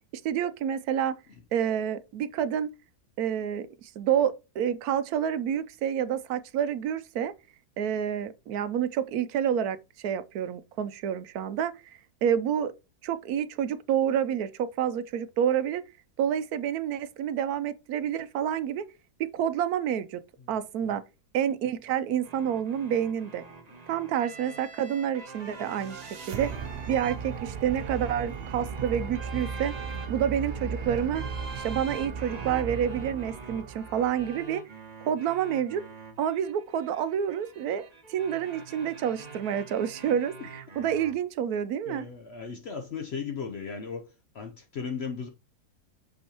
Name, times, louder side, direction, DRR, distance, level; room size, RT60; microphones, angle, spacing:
voice 1, 0.2-1.2 1.5-2.7 3.2-7.3 7.8-12.7 13.0-15.8 16.2-18.9 19.2-20.2 20.5-21.0 21.3-23.4 23.9-26.6 26.9-29.7 30.1-31.2 31.6-34.6 35.0-35.8 36.2-42.0, right 9 dB, 75° right, 1.0 m, -28 dB
sound 1, 22.2-41.1, right 4 dB, 30° right, 1.1 m, -45 dB
sound 2, 25.3-34.4, right 5 dB, 55° right, 0.7 m, -36 dB
voice 2, 40.1-40.5 41.9-45.3, left 6 dB, 60° left, 0.7 m, -37 dB
6.3 x 5.6 x 2.9 m
omnidirectional pair, 1.7 m